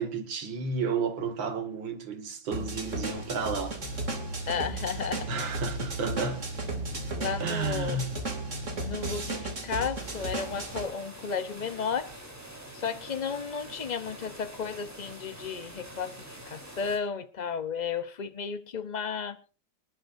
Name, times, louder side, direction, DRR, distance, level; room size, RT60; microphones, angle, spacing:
voice 1, 0.0-3.8 5.3-6.5 7.4-8.2, right 5 dB, 90° right, 2.5 m, -32 dB
sound 1, 2.5-10.9, right 2 dB, 40° right, 2.9 m, -35 dB
sound 2, 3.8-8.9 9.5-9.6, right 2 dB, 80° left, 3.9 m, -38 dB
voice 2, 4.5-5.3 7.1-8.0 8.8-12.1 12.7-19.4, left 6 dB, 65° left, 0.4 m, -33 dB
sound 3, 9.9-17.0, right 1 dB, 10° right, 3.7 m, -46 dB
26.5 x 11.5 x 2.6 m
omnidirectional pair, 2.0 m